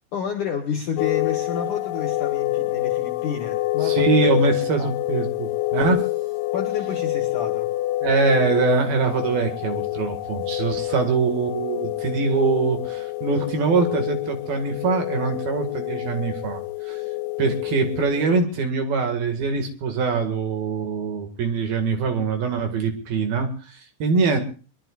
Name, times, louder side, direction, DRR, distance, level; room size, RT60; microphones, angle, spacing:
voice 1, 0.1-4.1 4.8-4.9 6.5-7.7 10.8-11.1, left 6 dB, 60° left, 3 dB, 2.3 m, -30 dB
sound 1, 1.0-18.4, left 17 dB, 75° left, 3.1 m, -27 dB
voice 2, 3.8-6.0 8.0-17.0 17.4-24.4, right 4 dB, 60° right, 5 dB, 3.4 m, -23 dB
24.5 x 21.5 x 2.4 m, 0.38 s
omnidirectional pair, 5.4 m